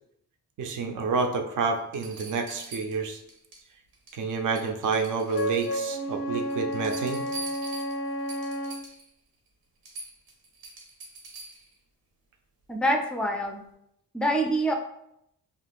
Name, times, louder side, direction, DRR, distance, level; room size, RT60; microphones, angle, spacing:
voice 1, 0.6-3.2 4.1-7.3, right 4 dB, 60° right, 5 dB, 0.5 m, -29 dB
sound 1, 1.9-3.6 3.9-4.3 4.5-6.0 6.4-9.1 9.5-9.6 9.8-11.7 13.4-13.5, right 2 dB, 85° right, 0.9 m, -43 dB
Wind instrument woodwind instrument, 5.3-8.9, equal, 85° left, 0.5 m, -31 dB
voice 2, 12.7-13.6 14.1-14.7, right 1 dB, 5° left, 2 dB, 0.3 m, -25 dB
2.5 x 2.3 x 3.4 m, 0.77 s
cardioid pair, 90°, 35 cm